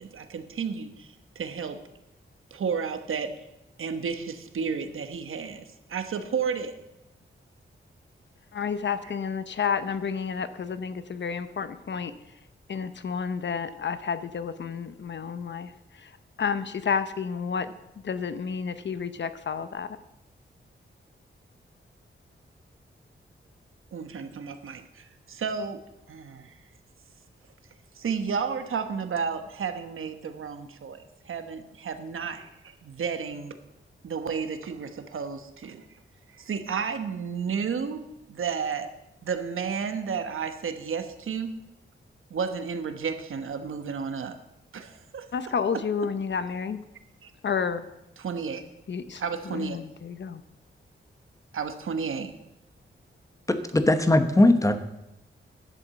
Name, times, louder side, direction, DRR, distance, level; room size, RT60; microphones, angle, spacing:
voice 1, 0.0-1.8 2.5-3.3 3.8-6.7 23.9-25.8 26.1-26.5 28.0-33.6 34.0-35.8 36.4-38.0 38.3-38.9 39.2-41.5 42.3-44.3 44.7-45.2 47.2-47.3 48.2-48.6 49.2-49.8 51.5-52.3, right 6 dB, 85° right, 9 dB, 1.1 m, -32 dB
voice 2, 8.5-12.1 12.7-15.7 16.0-16.1 16.4-17.7 18.0-20.0 45.3-46.8 47.4-47.9 48.9-50.4, left 6 dB, 60° left, 12 dB, 0.8 m, -30 dB
voice 3, 53.5-54.8, left 1 dB, 15° left, 9 dB, 1.0 m, -20 dB
11.0 x 7.9 x 7.5 m, 0.89 s
wide cardioid pair, 120°, 21 cm